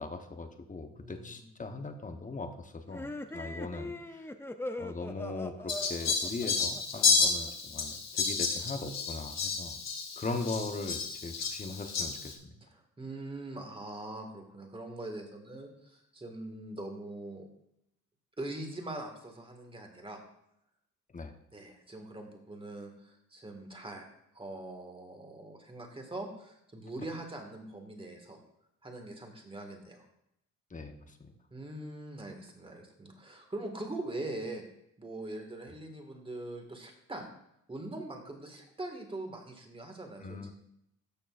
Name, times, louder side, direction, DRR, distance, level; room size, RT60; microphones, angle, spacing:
voice 1, 0.0-4.3 4.8-9.8 10.2-12.5 21.1-21.3 30.7-31.3 40.2-40.5, left 3 dB, 25° left, 7 dB, 1.0 m, -39 dB
voice 2, 0.9-1.5 10.2-10.4 12.6-17.5 18.4-20.2 21.5-24.1 24.3-28.4 28.8-30.1 31.5-34.6 35.0-37.3 37.7-40.5, right 2 dB, 20° right, 3 dB, 1.9 m, -42 dB
sound 1, 2.9-7.5, left 1 dB, 10° left, 0.5 m, -41 dB
Fowl, 5.7-12.3, left 5 dB, 60° left, 1.5 m, -31 dB
12.5 x 6.6 x 2.5 m, 0.79 s
cardioid pair, 90°, 30 cm